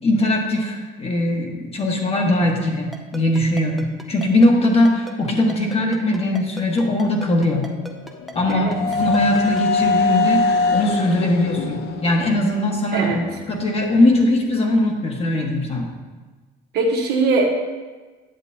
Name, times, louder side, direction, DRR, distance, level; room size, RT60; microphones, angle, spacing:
voice 1, 0.0-7.7 8.3-13.1 13.5-15.9, left 1 dB, 35° left, 1 dB, 1.3 m, -20 dB
Ringtone, 2.9-9.6, right 1 dB, ahead, 0.6 m, -37 dB
sound 1, 7.5-13.4, left 3 dB, 80° left, 0.6 m, -23 dB
voice 2, 12.9-13.2 16.7-17.5, right 3 dB, 70° right, 1 dB, 1.2 m, -20 dB
9.0 x 7.2 x 2.7 m, 1.3 s
cardioid pair, 110°, 17 cm